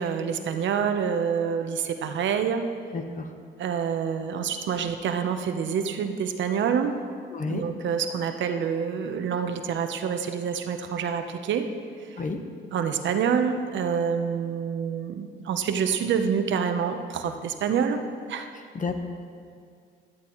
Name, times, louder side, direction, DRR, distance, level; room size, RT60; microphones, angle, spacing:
voice 1, 0.0-2.7 3.6-7.0 7.5-11.7 12.1-12.2 12.7-18.0 18.3-18.5, right 7 dB, 70° right, 7 dB, 0.8 m, -27 dB
voice 2, 2.9-3.3 7.3-7.6 12.2-12.4 18.7-18.9, left 4 dB, 40° left, 5 dB, 1.1 m, -30 dB
12.5 x 12.0 x 3.1 m, 2.2 s
cardioid pair, 90°, 20 cm